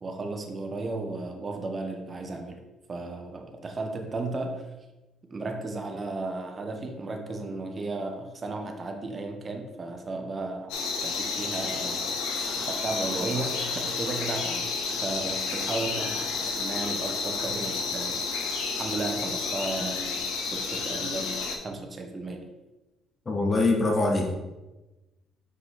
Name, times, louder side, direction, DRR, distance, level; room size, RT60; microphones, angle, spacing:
voice 1, 0.0-2.6 2.9-4.7 5.2-14.7 15.0-18.2 18.8-22.4, right 3 dB, 40° right, 4 dB, 1.1 m, -34 dB
sound 1, 10.7-21.6, left 4 dB, 85° left, 1.0 m, -31 dB
voice 2, 23.3-24.3, left 2 dB, 30° left, 0 dB, 1.7 m, -23 dB
6.4 x 4.9 x 3.9 m, 1.1 s
supercardioid pair, 65°, 0 cm